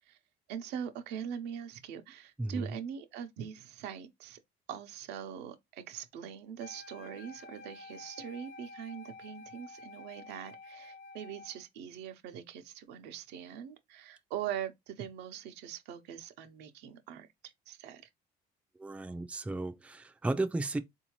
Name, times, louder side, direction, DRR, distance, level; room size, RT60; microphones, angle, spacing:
voice 1, 0.5-4.4 4.7-18.0, right 9 dB, 90° right, 0.7 m, -42 dB
voice 2, 2.4-2.7 18.8-20.8, right 2 dB, 5° right, 0.4 m, -34 dB
Wind instrument woodwind instrument, 6.6-11.6, left 3 dB, 60° left, 0.7 m, -50 dB
3.8 x 2.7 x 2.9 m
cardioid pair, 110°, 17 cm